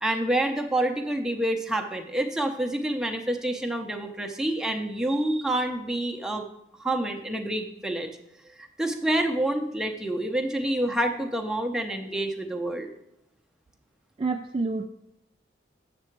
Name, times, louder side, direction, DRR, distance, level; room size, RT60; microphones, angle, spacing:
voice 1, 0.0-6.4 6.8-8.1 8.6-12.9, right 1 dB, 5° right, 3 dB, 0.7 m, -28 dB
voice 2, 14.2-14.9, right 3 dB, 30° right, 4 dB, 0.3 m, -28 dB
8.1 x 6.7 x 4.6 m, 0.83 s
head